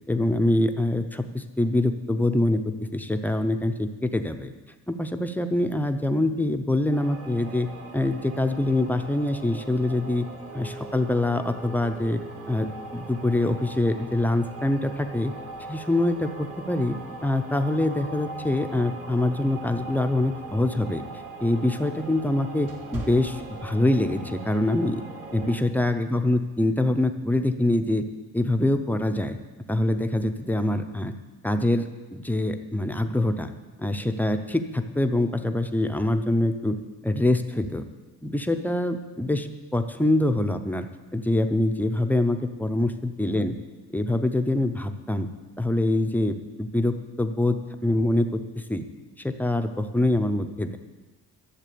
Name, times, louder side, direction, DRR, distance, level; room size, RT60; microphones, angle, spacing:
voice 1, 0.1-4.5 4.9-7.7 7.9-10.2 10.5-12.2 12.5-15.3 15.7-21.0 21.4-25.0 25.3-28.0 28.3-29.4 29.7-31.1 31.4-33.5 33.8-36.8 37.0-37.8 38.2-40.9 41.1-43.6 43.9-45.3 45.6-47.6 47.8-48.8 49.2-50.8, left 1 dB, 5° left, 7 dB, 0.6 m, -25 dB
sound 1, 6.9-25.6, right 3 dB, 40° right, 1.6 m, -40 dB
sound 2, 22.5-24.1 24.6-24.8 25.4-25.7, right 1 dB, 65° right, 2.4 m, -42 dB
12.5 x 7.4 x 8.5 m, 1.2 s
cardioid pair, 160°, 35 cm